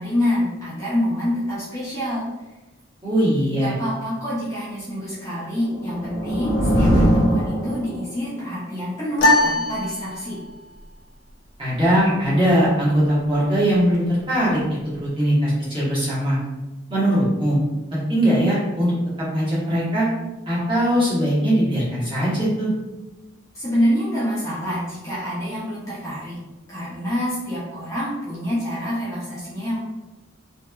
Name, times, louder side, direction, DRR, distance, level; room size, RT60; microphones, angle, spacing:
voice 1, 0.0-2.3 3.6-10.4 23.5-26.4 26.7-29.8, equal, 15° left, -9 dB, 0.6 m, -26 dB
voice 2, 3.0-3.7 11.6-14.6 15.0-16.4 16.9-17.6 17.9-20.1 20.5-22.7, equal, 25° right, -9 dB, 1.0 m, -20 dB
sound 1, 5.5-8.3, equal, 80° left, 0.9 m, -21 dB
sound 2, 9.2-10.7, left 1 dB, 65° left, 0.5 m, -21 dB
2.9 x 2.3 x 2.2 m, 1.1 s
head